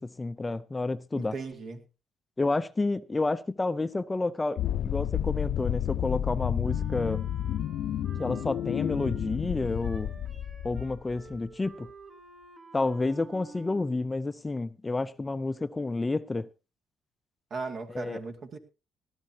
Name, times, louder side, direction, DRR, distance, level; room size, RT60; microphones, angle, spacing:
voice 1, 0.0-1.4 2.4-7.2 8.2-10.1 10.6-11.9 12.7-16.5 17.9-18.2, left 3 dB, 20° left, 0.5 m, -30 dB
voice 2, 1.1-1.8 17.5-18.6, right 4 dB, 55° right, 2.3 m, -37 dB
sound 1, 4.6-11.4, left 11 dB, 70° left, 0.7 m, -31 dB
Wind instrument woodwind instrument, 6.6-14.2, right 4 dB, 40° right, 1.7 m, -50 dB
18.5 x 12.0 x 2.9 m
cardioid pair, 85°, 0 cm